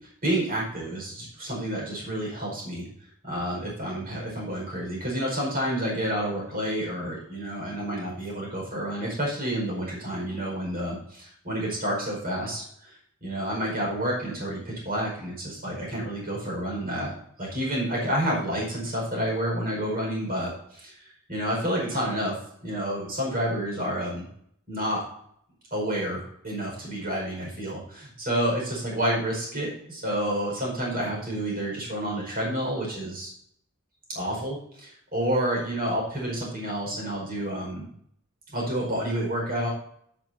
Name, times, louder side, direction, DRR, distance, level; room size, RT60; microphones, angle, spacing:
voice 1, 0.2-2.9 3.2-17.1 17.4-22.3 22.6-24.2 24.7-25.0 25.7-33.3 34.1-37.9 38.5-39.7, right 1 dB, 45° right, -2 dB, 5.0 m, -29 dB
11.5 x 11.0 x 2.7 m, 0.68 s
head